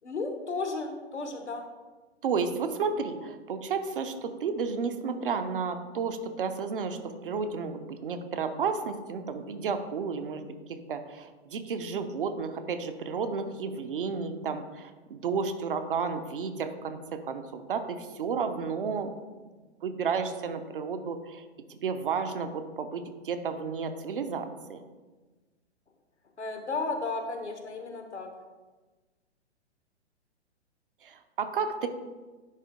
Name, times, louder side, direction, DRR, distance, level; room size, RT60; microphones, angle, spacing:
voice 1, 0.0-1.6 26.4-28.3, left 3 dB, 75° left, 5 dB, 1.1 m, -34 dB
voice 2, 2.2-10.4 10.7-19.1 19.8-24.8 31.0-31.9, right 5 dB, 50° right, 8 dB, 0.7 m, -32 dB
9.9 x 3.4 x 3.6 m, 1.3 s
figure-of-eight pair, 120°, 34 cm